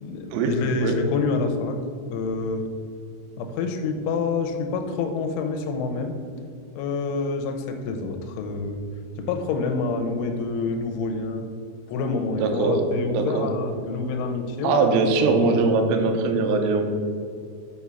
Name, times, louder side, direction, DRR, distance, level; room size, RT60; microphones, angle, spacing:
voice 1, 0.0-1.8 2.1-2.7 3.4-6.1 6.8-8.8 9.2-11.5 11.9-15.6, left 4 dB, 85° left, 6 dB, 3.2 m, -27 dB
voice 2, 12.4-12.8 13.1-13.5 14.6-16.8, right 4 dB, 75° right, 4 dB, 2.8 m, -21 dB
6.9 x 6.1 x 5.5 m, 2.4 s
omnidirectional pair, 5.5 m